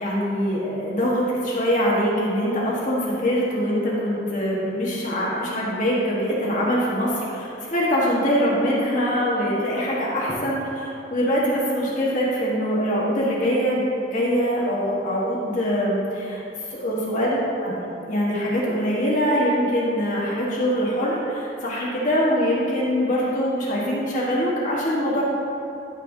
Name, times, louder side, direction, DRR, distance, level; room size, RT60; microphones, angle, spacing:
voice 1, 0.0-16.4 16.7-17.7 18.1-25.2, equal, 45° left, -6 dB, 1.3 m, -23 dB
13.0 x 5.4 x 2.7 m, 3.0 s
head